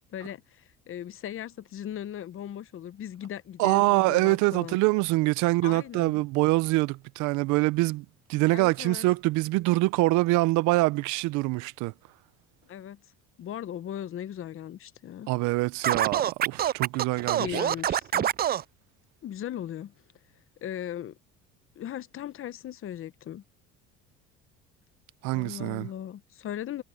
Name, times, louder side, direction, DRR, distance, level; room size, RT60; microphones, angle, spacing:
voice 1, 0.1-4.8 5.6-6.2 8.5-9.0 12.7-13.0 13.4-15.3 17.1-18.3 19.2-19.9 20.6-21.2 21.8-23.4 25.3-26.8, left 10 dB, 45° left, 1.0 m, -38 dB
voice 2, 3.6-8.0 8.3-11.9 15.3-17.5 25.2-25.9, right 21 dB, 75° right, 0.8 m, -24 dB
Scratching (performance technique), 15.8-18.6, right 10 dB, 30° right, 0.4 m, -25 dB
supercardioid pair, 90°, 30 cm